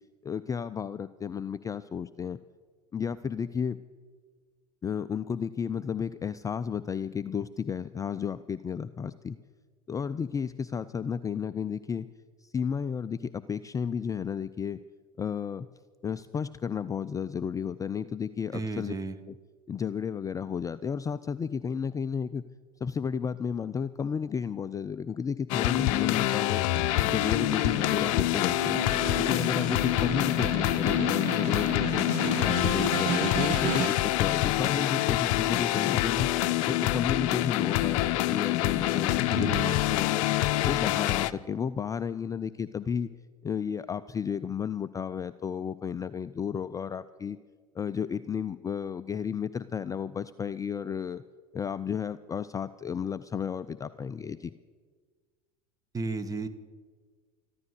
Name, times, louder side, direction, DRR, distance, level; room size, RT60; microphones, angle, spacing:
voice 1, 0.2-2.4 2.9-3.8 4.8-9.4 9.9-12.1 12.4-14.8 15.2-15.7 16.0-18.9 19.3-19.4 19.7-22.4 22.8-26.6 27.0-28.8 29.2-32.1 32.4-36.3 36.7-40.2 40.6-43.1 43.4-47.4 47.7-51.2 51.5-54.5, left 7 dB, 15° left, 13 dB, 0.4 m, -32 dB
voice 2, 18.5-19.1 39.3-39.8 55.9-56.5, right 3 dB, 20° right, 11 dB, 1.2 m, -33 dB
sound 1, 25.5-41.3, left 15 dB, 60° left, 0.6 m, -26 dB
Snare drum, 26.7-34.2, right 15 dB, 55° right, 0.6 m, -35 dB
14.0 x 12.5 x 6.6 m, 1.5 s
hypercardioid pair, 85°, 19 cm